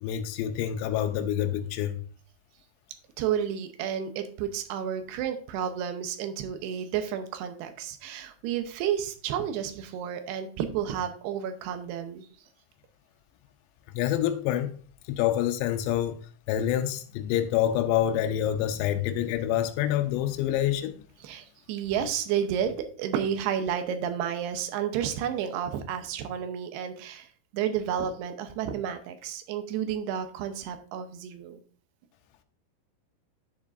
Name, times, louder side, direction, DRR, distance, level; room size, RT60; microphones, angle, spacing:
voice 1, 0.0-2.0 13.9-14.7 15.1-16.2 16.5-21.0, left 11 dB, 90° left, 2.8 m, -27 dB
voice 2, 3.2-12.3 21.2-22.7 23.0-31.6, right 9 dB, 80° right, 2.8 m, -31 dB
10.0 x 7.2 x 2.5 m
omnidirectional pair, 4.9 m